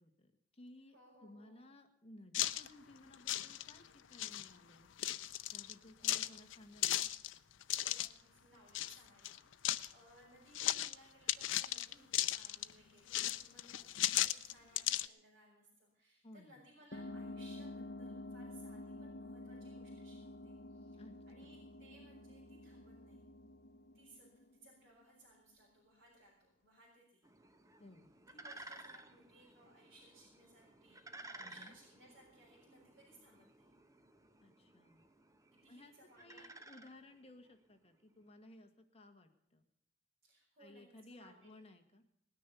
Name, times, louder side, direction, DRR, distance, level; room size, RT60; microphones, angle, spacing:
voice 1, 0.0-4.9 5.5-7.1 16.2-16.6 21.0-21.5 27.8-28.1 31.4-31.8 34.4-35.0 35.7-39.7 40.6-42.0, left 1 dB, 30° left, 4 dB, 1.7 m, -58 dB
voice 2, 0.9-1.7 5.4-5.7 6.0-6.4 7.7-21.0 21.3-23.2 23.9-27.3 28.3-33.7 35.5-36.5 40.2-41.6, right 1 dB, 55° right, -6 dB, 5.3 m, -64 dB
sound 1, 2.3-2.7 3.1-3.9 4.1-4.5 5.0-5.7 6.0-8.1 8.7-9.0 9.2-9.9 10.5-10.9 11.3-12.7 13.1-15.1, left 13 dB, 70° left, 0.6 m, -36 dB
sound 2, 16.9-25.0, left 2 dB, 55° left, 1.0 m, -49 dB
sound 3, 27.2-37.6, right 2 dB, 15° right, 1.1 m, -56 dB
19.0 x 10.0 x 6.9 m, 0.72 s
head